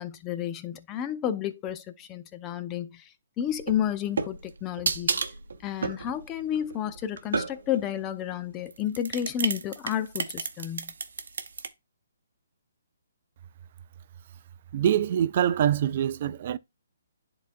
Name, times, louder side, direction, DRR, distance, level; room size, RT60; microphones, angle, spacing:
voice 1, 0.0-5.2 5.6-10.9, left 10 dB, 20° left, 0.7 m, -31 dB
sound 1, 3.5-7.9 8.7-11.7, right 5 dB, 70° right, 0.8 m, -31 dB
voice 2, 14.7-16.6, right 10 dB, 45° right, 0.4 m, -24 dB
10.5 x 3.9 x 2.6 m
hypercardioid pair, 145°, 0 cm